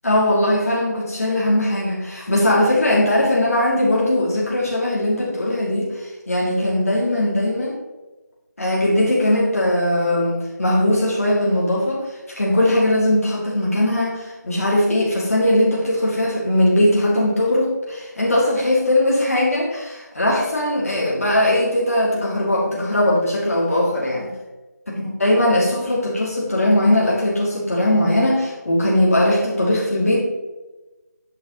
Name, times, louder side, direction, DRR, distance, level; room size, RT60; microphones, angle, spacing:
voice 1, 0.0-7.7 8.6-24.3 24.9-30.2, left 1 dB, 55° left, -5 dB, 2.8 m, -19 dB
8.9 x 5.9 x 4.1 m, 1.1 s
figure-of-eight pair, 160°, 9 cm